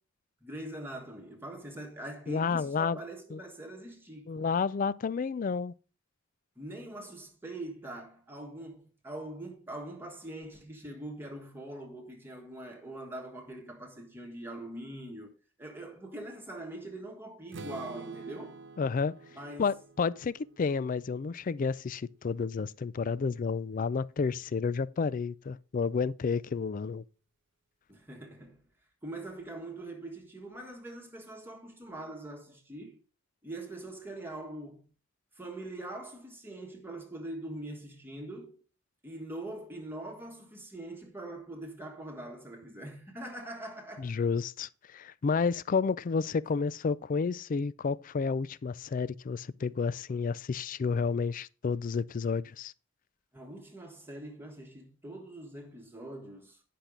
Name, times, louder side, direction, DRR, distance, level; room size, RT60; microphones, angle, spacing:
voice 1, 0.4-4.5 6.6-15.3 15.6-18.6 19.3-19.7 27.9-28.6 29.0-33.0 33.4-34.9 35.3-38.6 39.0-44.1 53.3-56.6, right 1 dB, 10° right, 1.5 m, -43 dB
voice 2, 2.3-3.0 3.3-3.4 4.3-5.7 18.8-19.1 19.6-27.0 44.0-52.7, left 5 dB, 40° left, 0.4 m, -31 dB
Strum, 17.5-21.4, right 3 dB, 60° right, 1.0 m, -48 dB
10.0 x 5.9 x 5.0 m
head